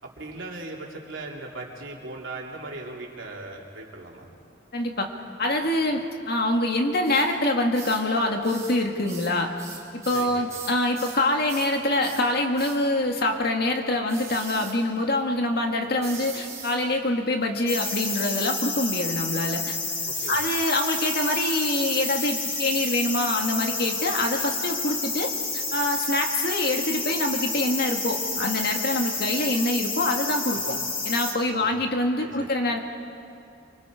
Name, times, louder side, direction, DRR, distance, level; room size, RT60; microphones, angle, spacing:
voice 1, 0.0-4.3 10.1-10.5 20.1-20.4 30.5-30.8 31.5-31.7 32.2-32.5, right 2 dB, 70° right, -2 dB, 3.5 m, -38 dB
voice 2, 4.7-5.1 5.4-9.5 9.9-19.8 20.3-30.7 31.0-32.8, left 1 dB, 50° left, 3 dB, 1.9 m, -25 dB
sound 1, 7.0-7.3 7.7-8.1 8.4-8.8 9.1-11.2 11.5-11.7 12.0-12.3 12.6-12.8 14.1-14.8 16.0-16.8 17.8-18.7 20.1-22.9, right 5 dB, 15° right, 4.0 m, -40 dB
sound 2, 17.7-31.3, left 4 dB, 25° left, 2.5 m, -30 dB
29.0 x 25.5 x 5.0 m, 2.5 s
head